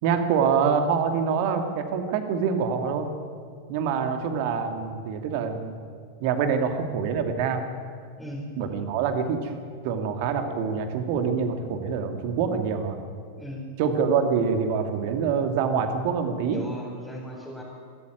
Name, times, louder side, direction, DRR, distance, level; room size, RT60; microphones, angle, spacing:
voice 1, 0.0-3.1 3.7-5.8 6.2-7.6 8.6-9.5 9.8-13.0 13.8-16.6, right 6 dB, 45° right, 6 dB, 2.6 m, -25 dB
voice 2, 13.4-13.7 16.5-17.6, equal, ahead, -4 dB, 4.3 m, -37 dB
23.5 x 14.0 x 9.4 m, 2.2 s
figure-of-eight pair, 90°, 0 cm